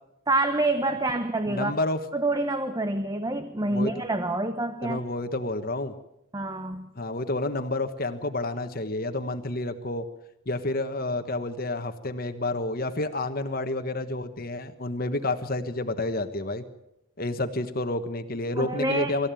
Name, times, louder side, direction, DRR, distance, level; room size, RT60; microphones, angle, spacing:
voice 1, 0.3-1.7 2.1-5.0 6.3-6.9 18.6-19.2, right 2 dB, 20° right, 9 dB, 0.9 m, -27 dB
voice 2, 1.5-2.0 3.6-3.9 4.8-5.9 7.0-10.0 10.5-16.6 17.2-19.3, left 2 dB, 45° left, 8 dB, 1.3 m, -29 dB
25.0 x 14.5 x 9.1 m, 0.87 s
head